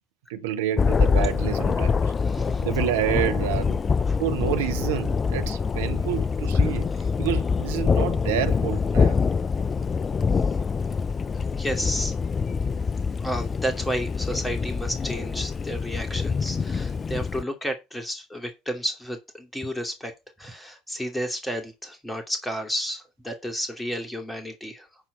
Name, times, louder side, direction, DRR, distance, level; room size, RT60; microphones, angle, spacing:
voice 1, 0.3-2.1 2.6-3.8 4.2-6.9 7.2-9.2, right 10 dB, 75° right, 1.1 m, -28 dB
Thunder, 0.8-17.4, left 5 dB, 30° left, 0.4 m, -25 dB
voice 2, 2.2-2.7 4.1-4.2 11.6-12.1 13.2-20.1 20.4-24.9, equal, 10° left, 2.6 m, -32 dB
11.5 x 4.5 x 5.4 m
hypercardioid pair, 65°, 0 cm